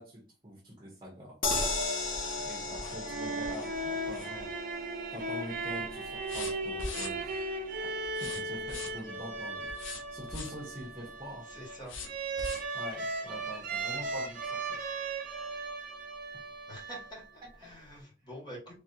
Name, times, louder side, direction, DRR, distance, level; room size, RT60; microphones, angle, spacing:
voice 1, 0.0-1.4 2.4-4.5 5.1-7.5 8.2-9.7 10.1-11.5 12.5-14.9 17.6-17.8, equal, 25° right, 1.2 m, -45 dB
sound 1, 1.4-4.8 5.1-5.5 5.8-7.5 8.0-9.1 9.7-10.7 11.8-12.8 13.3-13.4 13.8-13.9, left 3 dB, 90° left, 0.9 m, -43 dB
sound 2, 1.4-13.7 14.0-14.1 14.4-14.5, left 3 dB, 45° left, 1.0 m, -39 dB
sound 3, 2.8-17.4, right 3 dB, 45° right, 0.8 m, -37 dB
voice 2, 3.4-3.7 11.4-12.0 13.8-14.3 16.7-18.8, equal, 20° left, 2.0 m, -47 dB
3.5 x 3.3 x 2.8 m
head